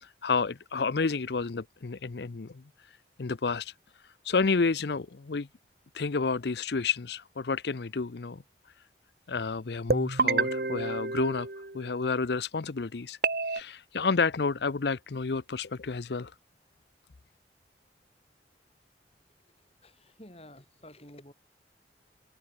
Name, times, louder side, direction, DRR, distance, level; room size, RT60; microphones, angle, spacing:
voice 1, 0.0-2.6 3.2-3.7 4.2-5.5 5.9-8.4 9.3-11.5 11.7-13.2 13.5-16.3, left 4 dB, 65° left, 0.6 m, -30 dB
sound 1, 9.9-12.0 13.2-13.6, right 3 dB, 55° right, 1.4 m, -29 dB
voice 2, 19.8-21.3, left 1 dB, 35° left, 7.8 m, -51 dB
head